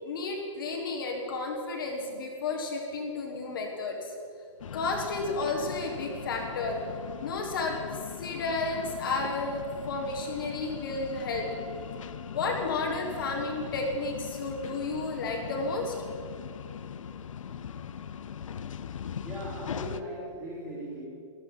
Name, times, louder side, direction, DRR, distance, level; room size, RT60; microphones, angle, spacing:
voice 1, 0.0-4.1 4.7-6.8 7.2-11.5 12.3-15.9, left 3 dB, 40° left, 0 dB, 1.5 m, -32 dB
sound 1, 4.6-20.0, left 8 dB, 70° left, 0.6 m, -40 dB
voice 2, 19.2-21.1, right 1 dB, 10° right, -5 dB, 2.8 m, -38 dB
14.5 x 12.0 x 5.6 m, 2.5 s
hypercardioid pair, 175°, 17 cm